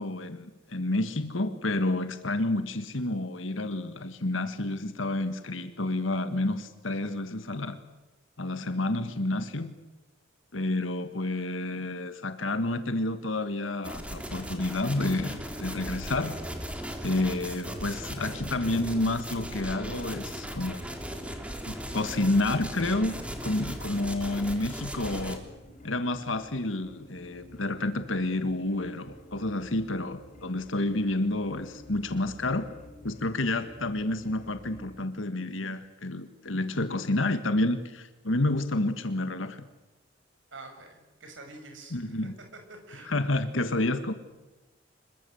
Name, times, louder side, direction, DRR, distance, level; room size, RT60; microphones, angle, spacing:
voice 1, 0.0-7.8 8.4-9.7 10.5-16.4 17.0-20.8 21.7-23.1 23.4-25.5 25.8-32.7 33.0-39.7 41.9-42.4 43.0-44.1, left 2 dB, 80° left, 9 dB, 1.7 m, -29 dB
sound 1, 13.8-25.4, equal, 5° right, 3.3 m, -38 dB
sound 2, 22.5-35.0, left 1 dB, 40° left, 4.3 m, -51 dB
voice 2, 40.5-42.0 42.7-43.1, right 2 dB, 70° right, 4 dB, 6.8 m, -46 dB
26.5 x 23.0 x 7.9 m, 1.1 s
head